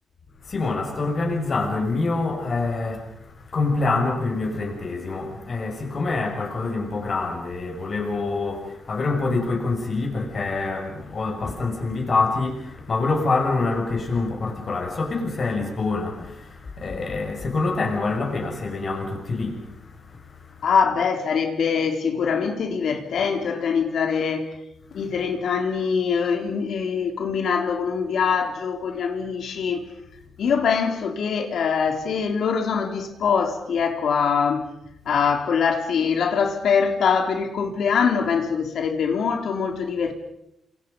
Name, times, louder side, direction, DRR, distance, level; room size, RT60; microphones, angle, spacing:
voice 1, 0.4-20.8 24.9-25.1 30.4-30.5, left 3 dB, 40° left, 6.5 m, -26 dB
voice 2, 20.6-24.5 24.9-29.8 30.4-34.7 35.1-40.1, left 6 dB, 70° left, 3.6 m, -23 dB
29.5 x 27.5 x 5.5 m
wide cardioid pair, 135°, 0 cm